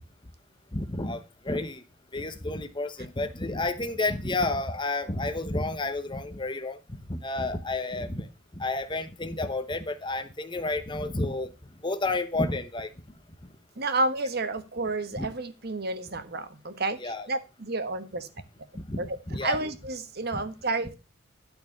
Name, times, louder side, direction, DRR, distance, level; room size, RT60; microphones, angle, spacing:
voice 1, 0.7-1.8 2.1-8.3 8.6-11.5 11.8-12.9 15.1-15.3 17.0-17.3 18.7-19.6 20.3-20.4, left 2 dB, 25° left, 0.9 m, -31 dB
voice 2, 13.8-18.3 19.0-21.0, right 2 dB, 50° right, 1.2 m, -30 dB
12.0 x 4.6 x 6.5 m
head